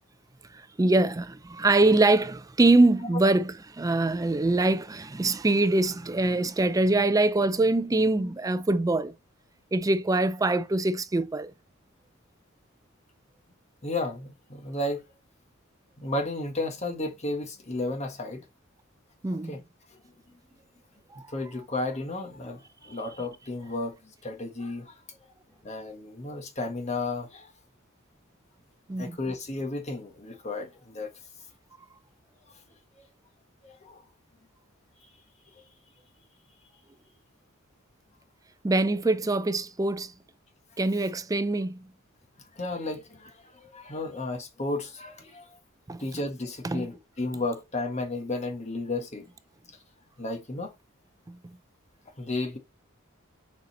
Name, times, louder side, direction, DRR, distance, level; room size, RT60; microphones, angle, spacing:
voice 1, 0.5-9.1 9.7-11.5 19.2-19.6 21.1-21.2 28.9-29.2 38.6-40.1 40.8-41.8 45.9-46.0 46.6-46.9, right 2 dB, 15° right, 0.4 m, -24 dB
voice 2, 13.8-15.0 16.0-18.4 19.5-19.6 21.3-23.9 24.2-24.9 25.6-27.5 29.0-31.1 33.6-34.0 42.5-45.5 46.0-49.3 50.2-50.7 52.2-52.6, left 2 dB, 35° left, 1.5 m, -33 dB
6.8 x 4.1 x 4.1 m
head